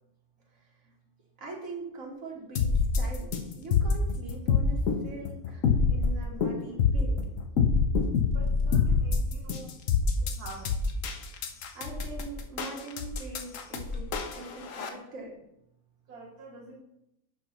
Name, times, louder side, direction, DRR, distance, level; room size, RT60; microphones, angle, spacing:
voice 1, 1.4-7.2 11.8-14.1 14.3-15.3, right 2 dB, 65° right, -2 dB, 2.0 m, -42 dB
sound 1, 2.6-14.9, left 5 dB, 65° left, 1.1 m, -26 dB
voice 2, 8.2-9.8 10.2-10.7 16.1-16.8, right 2 dB, 85° right, -1 dB, 1.5 m, -46 dB
10.5 x 4.8 x 3.0 m, 0.83 s
omnidirectional pair, 1.6 m